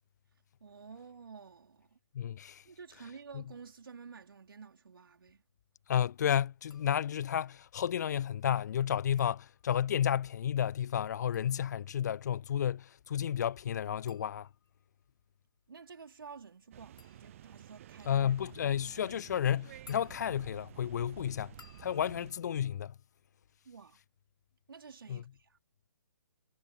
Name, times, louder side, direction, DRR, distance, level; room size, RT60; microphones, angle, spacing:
voice 1, 0.6-2.0 2.6-5.4 15.7-18.2 23.6-24.0 24.7-25.6, right 5 dB, 70° right, 4.3 m, -51 dB
voice 2, 2.1-2.6 3.3-3.4 5.9-14.5 18.1-21.5 21.8-22.9 25.1-25.2, left 9 dB, 50° left, 0.4 m, -32 dB
sound 1, 6.7-7.4 9.0-10.1 11.0-23.8 24.0-24.6, left 5 dB, 65° left, 6.8 m, -64 dB
sound 2, 16.7-22.3, right 12 dB, 35° right, 0.4 m, -52 dB
figure-of-eight pair, 140°, 12 cm